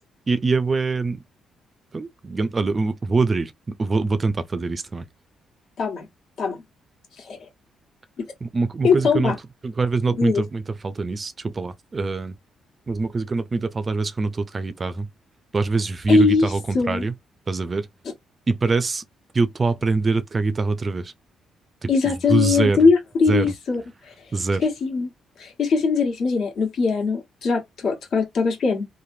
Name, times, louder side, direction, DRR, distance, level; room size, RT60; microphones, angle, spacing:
voice 1, 0.3-1.2 1.9-3.5 3.8-5.0 8.4-9.3 9.6-12.3 12.9-15.1 15.5-17.1 17.5-17.9 18.5-19.0 19.3-21.1 21.8-21.9 22.3-22.8 23.3-23.5 24.3-24.7, right 3 dB, 30° right, 0.4 m, -24 dB
voice 2, 5.8-6.1 6.4-6.6 7.2-7.4 8.2-8.3 8.8-9.3 10.2-10.4 16.1-17.1 21.9-24.1 24.6-25.1 25.4-28.9, left 4 dB, 70° left, 1.4 m, -21 dB
3.1 x 2.1 x 2.6 m
cardioid pair, 90°, 0 cm